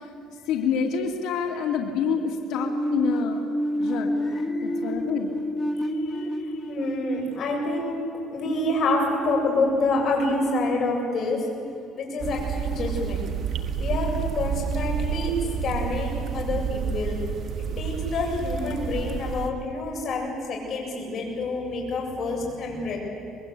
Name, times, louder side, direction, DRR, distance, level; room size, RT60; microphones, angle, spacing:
voice 1, 0.5-3.4 3.8-4.1 4.6-5.3 6.1-6.3, left 6 dB, 75° left, 2 dB, 2.5 m, -27 dB
sound 1, 2.5-8.2, equal, 10° left, 1.4 m, -29 dB
voice 2, 4.2-4.6 6.7-8.0 8.3-11.5 11.9-13.2 13.8-17.2 17.8-23.0, left 2 dB, 45° left, 0 dB, 7.7 m, -27 dB
sound 2, 12.2-19.5, right 7 dB, 40° right, 1.8 m, -29 dB
25.5 x 21.5 x 8.4 m, 2.7 s
cardioid pair, 135°, 0 cm